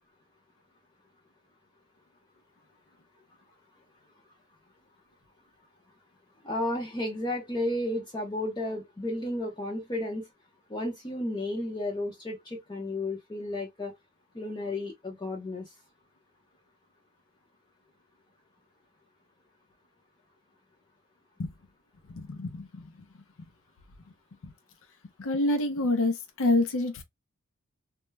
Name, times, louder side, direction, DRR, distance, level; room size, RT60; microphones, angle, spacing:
voice 1, 6.4-10.3 10.7-13.9 14.3-15.7, left 1 dB, 20° left, 0.6 m, -33 dB
voice 2, 22.1-23.2 24.4-24.5 25.2-27.0, left 2 dB, 65° left, 0.5 m, -28 dB
2.2 x 2.1 x 3.1 m
head